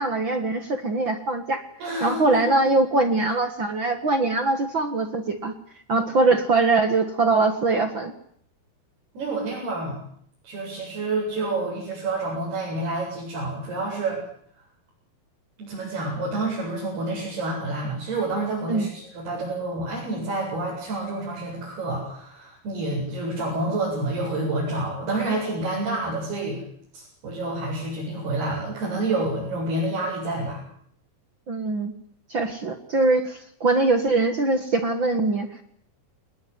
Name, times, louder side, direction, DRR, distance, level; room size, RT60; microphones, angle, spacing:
voice 1, 0.0-1.6 2.0-5.5 5.9-8.1 18.7-18.9 31.5-31.9 32.3-35.6, right 3 dB, 45° right, 8 dB, 1.6 m, -22 dB
voice 2, 1.8-2.4 9.1-10.0 10.4-14.2 15.6-26.6 26.9-30.6, right 2 dB, 80° right, -5 dB, 10.0 m, -28 dB
24.5 x 20.0 x 9.5 m, 0.67 s
omnidirectional pair, 4.5 m